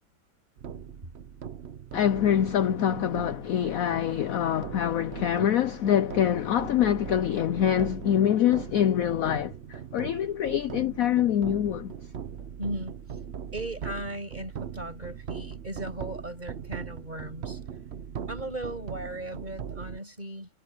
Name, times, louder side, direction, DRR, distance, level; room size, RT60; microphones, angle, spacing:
sound 1, 0.6-20.0, right 8 dB, 50° right, 0.9 m, -40 dB
voice 1, 1.9-11.9, left 10 dB, 65° left, 1.0 m, -25 dB
voice 2, 12.6-12.9 13.5-17.6 18.3-20.5, right 1 dB, 25° right, 6.4 m, -37 dB
omnidirectional pair, 1.9 m